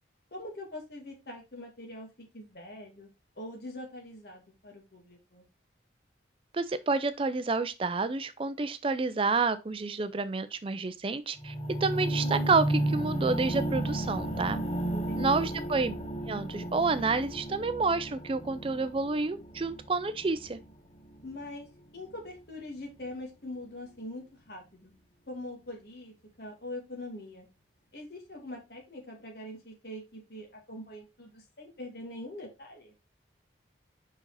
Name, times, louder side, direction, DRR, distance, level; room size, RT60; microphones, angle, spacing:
voice 1, 0.3-3.1 3.4-5.4 14.9-15.6 21.2-21.7 21.9-24.9 25.3-27.5 27.9-32.9, left 1 dB, 60° left, 2.0 m, -43 dB
voice 2, 6.5-11.5 11.8-14.6 15.2-15.9 16.3-20.6, right 4 dB, 30° right, 0.4 m, -29 dB
sound 1, 11.4-21.5 22.2-22.3, right 1 dB, 30° left, 1.1 m, -33 dB
5.4 x 4.9 x 4.0 m
head